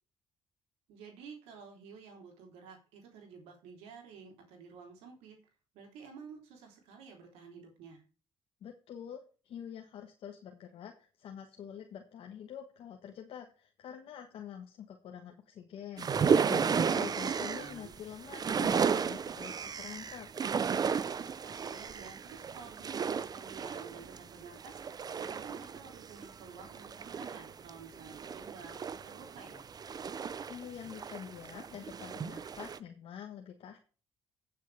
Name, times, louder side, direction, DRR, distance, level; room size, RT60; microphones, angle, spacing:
voice 1, 0.9-5.4 5.7-8.0 17.5-17.9 21.4-24.8 25.2-29.7, right 5 dB, 90° right, 2 dB, 3.4 m, -51 dB
voice 2, 8.6-20.3 30.5-33.8, left 9 dB, 70° left, 3 dB, 1.3 m, -46 dB
sound 1, 16.0-32.8, right 6 dB, 40° right, 0.6 m, -34 dB
15.5 x 6.6 x 3.4 m, 0.36 s
cardioid pair, 80°, 10 cm